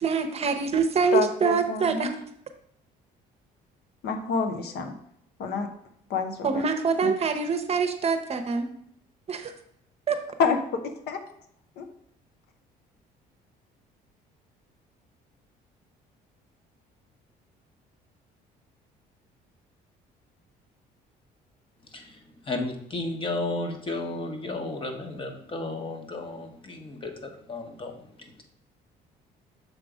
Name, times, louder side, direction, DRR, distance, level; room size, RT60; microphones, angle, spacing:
voice 1, 0.0-2.1 6.4-8.7 9.3-9.5 10.1-10.2, right 5 dB, 40° right, 7 dB, 0.8 m, -25 dB
voice 2, 1.1-2.1 4.0-4.9 5.4-5.7 6.1-6.6 7.0-7.1 10.4-11.2 11.8-11.9, left 5 dB, 70° left, 6 dB, 0.9 m, -28 dB
voice 3, 22.5-28.0, left 2 dB, 30° left, 4 dB, 1.1 m, -33 dB
6.5 x 3.7 x 5.0 m, 0.70 s
cardioid pair, 110°, 17 cm